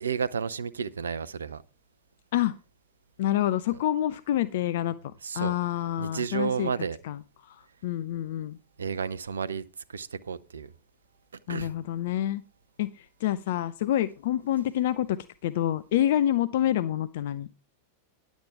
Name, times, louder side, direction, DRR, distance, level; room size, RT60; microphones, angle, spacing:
voice 1, 0.0-1.6 5.2-5.6 6.0-7.0 8.8-9.6 9.9-10.7 11.5-11.7, right 6 dB, 70° right, 0.6 m, -31 dB
voice 2, 3.2-6.7 7.0-8.6 11.5-12.4 12.8-15.2 15.4-17.5, left 12 dB, 55° left, 0.4 m, -27 dB
10.5 x 7.2 x 4.7 m
figure-of-eight pair, 90°, 0 cm